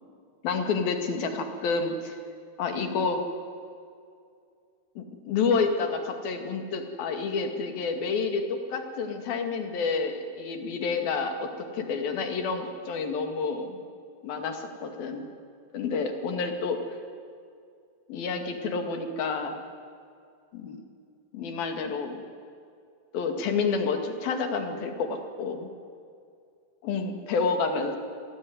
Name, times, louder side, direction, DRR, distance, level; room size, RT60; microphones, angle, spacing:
voice 1, 0.4-2.2 2.6-3.2 5.0-13.8 14.2-15.3 15.7-16.8 18.1-19.6 20.5-20.8 21.3-22.1 23.1-25.7 26.8-28.0, left 4 dB, 80° left, 5 dB, 4.0 m, -29 dB
27.5 x 19.0 x 9.5 m, 2.3 s
omnidirectional pair, 4.1 m